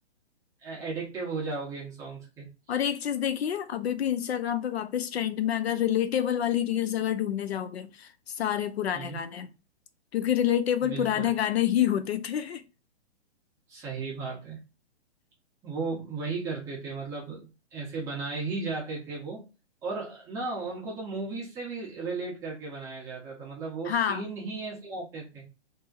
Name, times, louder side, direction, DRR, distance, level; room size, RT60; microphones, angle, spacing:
voice 1, 0.6-2.8 8.9-9.2 10.8-11.3 13.7-14.6 15.6-19.4 19.8-25.4, right 4 dB, 10° right, 0.6 m, -35 dB
voice 2, 2.7-9.5 10.1-12.6 23.8-24.3, left 10 dB, 65° left, 0.5 m, -27 dB
2.7 x 2.6 x 2.4 m
hypercardioid pair, 145°, 34 cm